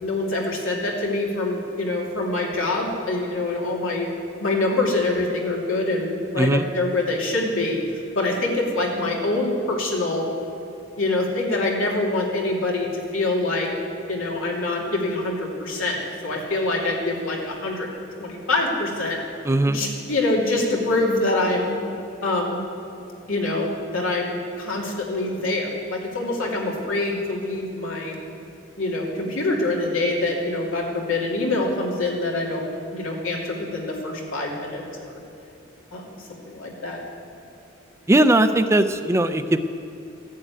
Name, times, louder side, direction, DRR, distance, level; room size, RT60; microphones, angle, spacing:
voice 1, 0.0-4.1 4.4-7.8 8.1-10.3 11.0-13.7 14.1-16.0 16.2-17.9 18.2-19.2 19.7-21.7 22.2-22.6 23.3-28.1 28.8-35.2 35.9-37.0, left 2 dB, 90° left, -2 dB, 2.7 m, -25 dB
voice 2, 19.4-19.8 38.1-39.6, right 1 dB, 15° right, 9 dB, 0.4 m, -19 dB
14.5 x 7.4 x 9.2 m, 2.9 s
head